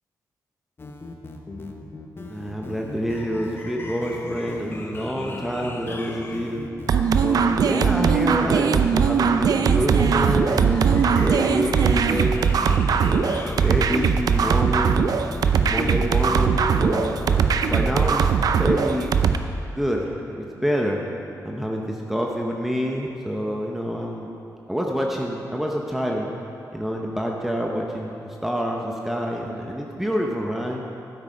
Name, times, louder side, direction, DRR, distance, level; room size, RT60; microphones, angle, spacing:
sound 1, 0.8-17.5, left 2 dB, 35° left, 1.0 m, -38 dB
voice 1, 2.3-6.7 7.2-12.5 13.0-15.2 15.7-19.1 19.7-21.0 21.4-24.3 24.7-26.3 26.7-30.8, equal, 5° right, -1 dB, 0.9 m, -27 dB
sound 2, 6.9-19.4, right 6 dB, 70° right, 0.5 m, -20 dB
13.5 x 8.1 x 5.1 m, 2.7 s
cardioid pair, 105°, 7 cm